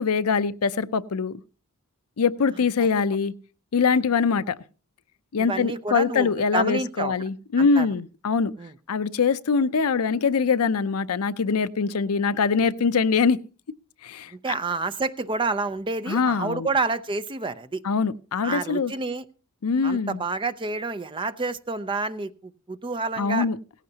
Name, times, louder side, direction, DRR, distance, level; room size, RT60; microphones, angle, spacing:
voice 1, 0.0-1.4 2.2-3.3 3.7-4.6 5.3-8.5 8.9-13.4 14.0-14.5 16.1-16.7 17.8-18.9 19.6-20.2 23.2-23.6, left 5 dB, 70° left, 0.5 m, -23 dB
voice 2, 5.4-7.1 7.6-7.9 8.6-8.7 14.3-17.8 18.4-19.2 19.8-23.5, right 3 dB, 20° right, 0.6 m, -29 dB
17.5 x 15.0 x 2.8 m
head